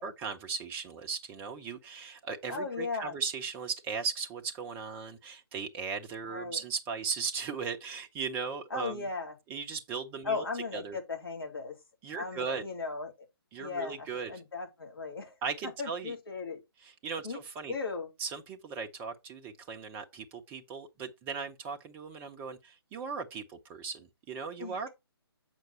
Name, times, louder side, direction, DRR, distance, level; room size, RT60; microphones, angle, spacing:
voice 1, 0.0-9.1 9.5-10.5 10.7-11.0 12.0-12.6 13.5-14.3 15.4-16.1 16.8-17.7 18.2-24.9, right 5 dB, 15° right, 0.7 m, -37 dB
voice 2, 2.5-3.1 6.3-6.6 8.7-9.3 10.2-11.7 12.1-13.1 13.6-15.3 15.8-16.6 17.2-17.4 17.7-18.1 24.6-24.9, left 4 dB, 60° left, 3.4 m, -36 dB
7.9 x 6.0 x 4.1 m
figure-of-eight pair, 140°, 13 cm